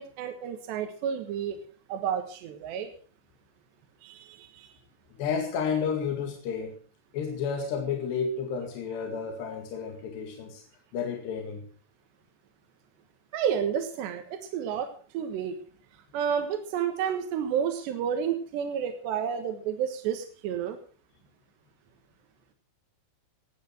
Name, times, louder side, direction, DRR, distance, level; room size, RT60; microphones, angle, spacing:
voice 1, 0.0-1.6 1.9-2.9 4.0-4.7 13.3-15.6 16.1-20.8, right 8 dB, 75° right, 6 dB, 3.6 m, -31 dB
voice 2, 5.1-6.8 7.1-10.6 10.9-11.6, left 6 dB, 75° left, 3 dB, 4.2 m, -31 dB
18.5 x 9.4 x 6.1 m, 0.41 s
omnidirectional pair, 5.0 m